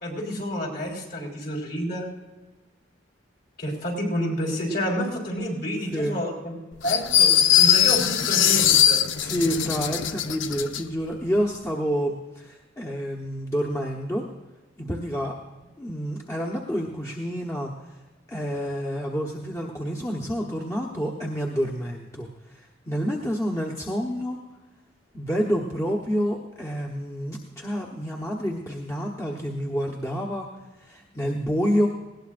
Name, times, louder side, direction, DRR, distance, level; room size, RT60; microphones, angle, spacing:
voice 1, 0.0-2.1 3.6-7.3 7.6-9.0, equal, 55° left, -1 dB, 4.2 m, -29 dB
sound 1, 6.9-10.8, left 10 dB, 80° left, 0.6 m, -20 dB
voice 2, 9.2-14.2 14.8-15.3 15.8-17.7 18.3-22.3 22.5-24.4 25.1-30.5 30.8-31.9, equal, 15° left, -1 dB, 1.1 m, -28 dB
19.5 x 17.0 x 2.5 m, 1.2 s
head